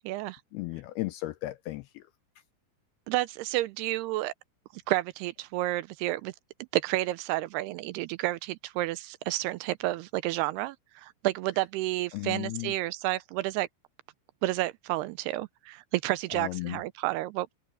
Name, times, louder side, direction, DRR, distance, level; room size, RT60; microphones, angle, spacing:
voice 1, 0.0-0.4 3.1-4.3 4.7-6.3 6.7-13.7 14.4-17.5, right 17 dB, 85° right, 2.5 m, -30 dB
voice 2, 0.5-2.1 12.1-12.7 16.3-16.8, left 19 dB, 80° left, 2.4 m, -35 dB
open air
omnidirectional pair, 4.9 m